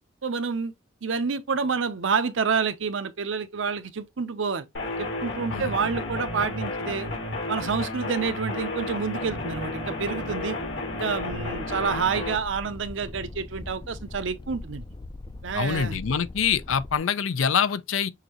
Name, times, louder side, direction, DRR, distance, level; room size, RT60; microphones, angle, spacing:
voice 1, 0.2-0.7 1.0-4.7 5.0-7.1 7.5-10.6 10.9-14.8 15.4-16.0, right 5 dB, 70° right, 0.7 m, -28 dB
sound 1, 4.7-12.4, left 2 dB, 65° left, 1.8 m, -32 dB
sound 2, 11.2-17.0, left 2 dB, 25° left, 0.4 m, -41 dB
voice 2, 15.5-18.1, left 7 dB, 85° left, 0.5 m, -25 dB
6.5 x 2.7 x 3.0 m
head